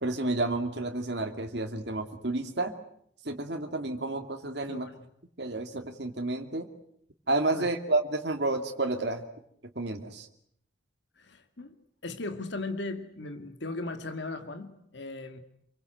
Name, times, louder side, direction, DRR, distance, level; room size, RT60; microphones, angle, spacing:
voice 1, 0.0-2.7 3.2-4.9 5.4-6.7 7.3-9.2 9.8-10.3, right 2 dB, 60° right, 3 dB, 2.5 m, -30 dB
voice 2, 4.7-5.0 7.5-7.7 11.2-11.8 12.0-15.4, left 2 dB, 65° left, 8 dB, 2.3 m, -37 dB
28.0 x 24.0 x 8.0 m, 0.70 s
head